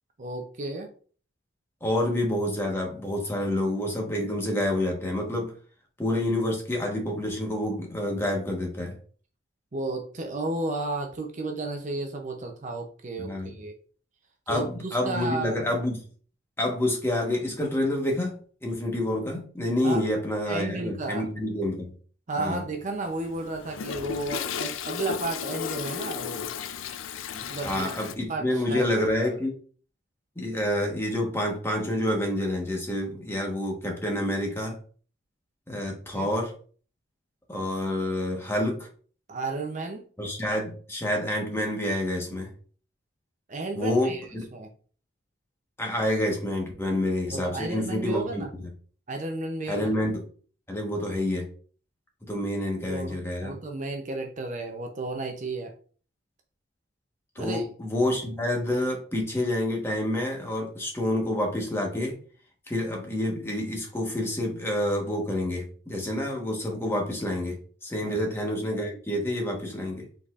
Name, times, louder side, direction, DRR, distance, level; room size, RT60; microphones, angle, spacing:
voice 1, 0.2-0.9 9.7-13.8 14.5-15.7 19.8-20.0 20.5-21.3 22.3-26.5 27.3-27.9 28.3-29.3 36.1-36.3 39.3-40.0 43.5-44.2 44.5-44.7 47.3-48.5 49.1-49.9 52.9-55.7 57.4-57.7 68.0-68.2, right 2 dB, 40° right, 4 dB, 0.5 m, -33 dB
voice 2, 1.8-5.5 6.0-8.9 13.2-13.5 14.5-16.0 16.6-21.9 22.4-22.6 27.6-29.5 30.4-34.8 35.7-36.5 37.5-38.9 40.2-42.5 43.7-44.4 45.8-48.7 49.7-50.2 50.7-51.5 52.3-53.6 57.3-62.2 62.7-70.1, left 1 dB, 10° left, 0 dB, 1.1 m, -28 dB
Toilet flush, 22.9-28.1, left 7 dB, 75° left, 0.4 m, -34 dB
5.1 x 4.1 x 2.4 m, 0.43 s
head